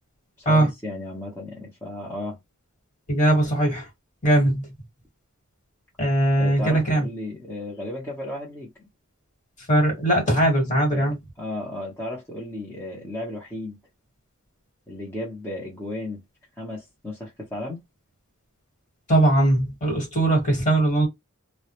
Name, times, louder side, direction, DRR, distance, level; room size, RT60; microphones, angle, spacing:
voice 1, 0.4-2.4 6.4-8.9 10.9-13.8 14.9-16.2 16.6-17.8, left 1 dB, 10° left, 0.7 m, -34 dB
voice 2, 3.1-3.9 4.2-4.6 6.0-7.0 9.7-11.1 19.1-21.1, right 1 dB, 35° left, 1.3 m, -20 dB
2.2 x 2.1 x 2.9 m
head